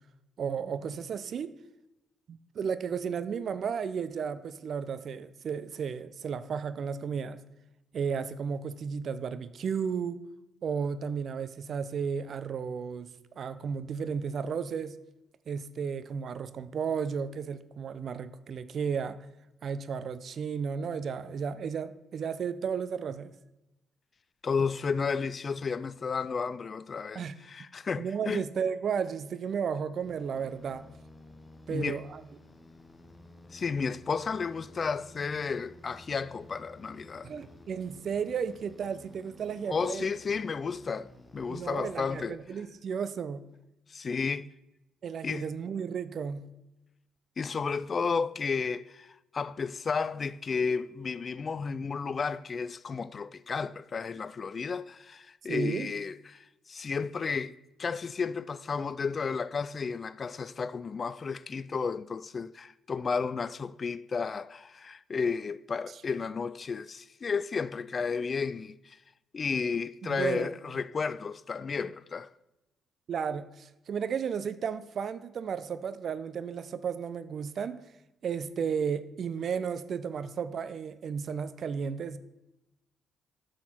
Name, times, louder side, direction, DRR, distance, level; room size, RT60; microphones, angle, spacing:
voice 1, 0.4-1.5 2.3-7.4 7.9-10.2 10.6-15.0 15.5-19.2 19.6-23.3 27.1-27.3 28.0-30.9 31.7-32.2 37.2-40.1 41.5-43.4 45.0-46.4 55.5-55.9 70.0-70.5 73.1-77.8 78.2-82.2, right 6 dB, 55° right, 0.5 m, -33 dB
voice 2, 24.4-28.4 31.7-32.0 33.5-37.3 39.7-42.4 43.9-44.5 45.2-45.4 47.4-69.0 69.3-72.3, left 5 dB, 45° left, 0.3 m, -32 dB
sound 1, 30.0-42.8, left 1 dB, 20° left, 1.1 m, -53 dB
7.6 x 6.4 x 5.8 m
hypercardioid pair, 50°, 0 cm